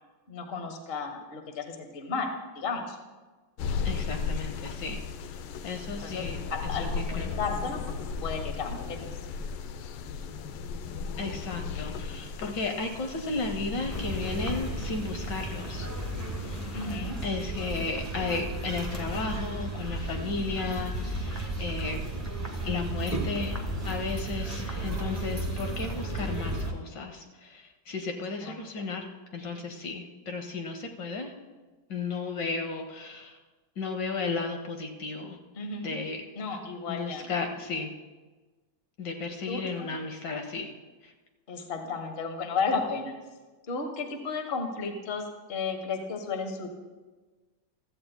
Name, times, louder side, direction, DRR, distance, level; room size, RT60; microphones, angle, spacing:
voice 1, 0.3-3.0 6.0-9.0 16.7-17.2 28.4-28.9 35.6-35.9 36.4-37.3 39.4-39.9 41.5-43.1 43.7-46.7, left 4 dB, 35° left, 4 dB, 1.1 m, -33 dB
sound 1, 3.6-17.0, left 5 dB, 85° left, 1.5 m, -36 dB
voice 2, 3.8-5.0 5.6-6.4 7.2-7.3 11.2-15.9 17.2-22.0 22.6-29.1 29.3-31.3 31.9-33.4 33.8-35.4 35.8-36.2 36.9-37.9 39.0-40.7, left 4 dB, 65° left, 5 dB, 1.4 m, -34 dB
sound 2, 13.9-26.7, right 1 dB, 10° right, 1.0 m, -34 dB
16.0 x 13.5 x 2.2 m, 1.3 s
omnidirectional pair, 2.2 m